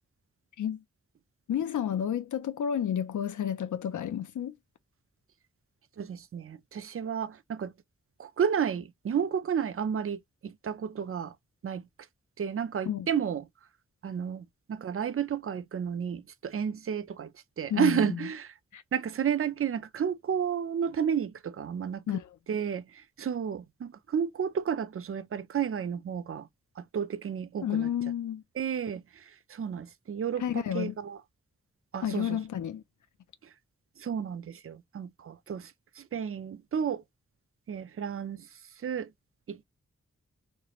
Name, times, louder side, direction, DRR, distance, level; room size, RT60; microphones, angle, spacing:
voice 1, 1.5-4.6 12.8-13.1 17.7-18.3 18.7-18.8 22.1-22.4 27.6-28.4 30.4-31.0 32.0-32.8, left 9 dB, 85° left, 0.5 m, -31 dB
voice 2, 6.0-7.7 8.2-11.3 11.6-11.8 12.4-13.4 14.0-17.3 17.6-18.5 18.9-22.0 22.5-22.8 23.2-26.5 26.9-27.6 28.6-29.0 29.5-30.4 30.7-31.2 31.9-32.3 34.0-35.7 36.0-37.0 37.7-38.4 38.8-39.1 39.5-39.6, right 7 dB, 50° right, 0.5 m, -31 dB
3.3 x 2.9 x 2.4 m
wide cardioid pair, 65°, 29 cm